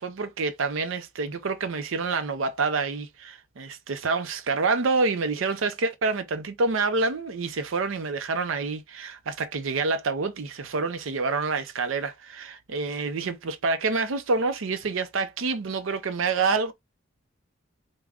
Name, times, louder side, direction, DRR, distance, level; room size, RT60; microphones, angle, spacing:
voice 1, 0.0-16.7, right 4 dB, 80° right, 0.5 m, -27 dB
3.5 x 2.1 x 3.5 m
head